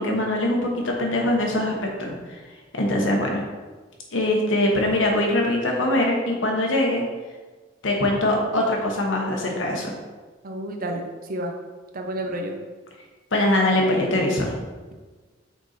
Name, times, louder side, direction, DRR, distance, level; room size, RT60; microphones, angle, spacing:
voice 1, 0.0-1.7 2.0-2.1 2.8-3.4 4.1-7.0 7.8-9.9 13.3-14.6, left 1 dB, 75° left, 0 dB, 1.2 m, -22 dB
voice 2, 10.4-11.5 11.9-12.5, right 1 dB, 50° right, 3 dB, 0.7 m, -30 dB
5.9 x 3.9 x 4.3 m, 1.3 s
head